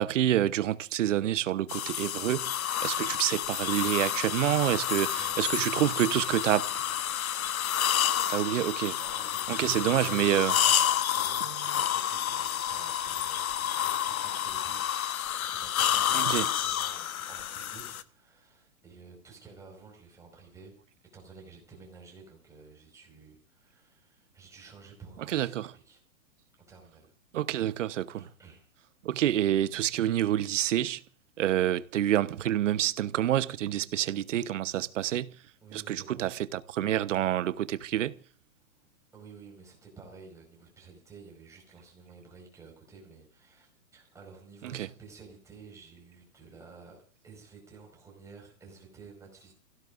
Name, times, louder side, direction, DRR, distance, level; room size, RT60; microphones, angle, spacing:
voice 1, 0.0-2.5 2.8-6.7 8.3-9.0 9.5-10.5 16.1-16.5 25.3-25.7 27.3-28.3 29.0-31.0 31.4-35.3 35.9-38.1 44.7-44.9, right 12 dB, 60° right, 1.0 m, -27 dB
sound 1, 1.7-18.0, left 10 dB, 80° left, 1.1 m, -29 dB
voice 2, 4.7-7.0 9.0-14.8 15.1-20.7 21.1-26.0 26.7-27.1 28.1-28.7 35.6-36.3 39.1-49.5, right 4 dB, 5° right, 5.0 m, -52 dB
29.0 x 16.5 x 2.5 m
hypercardioid pair, 155°, 42 cm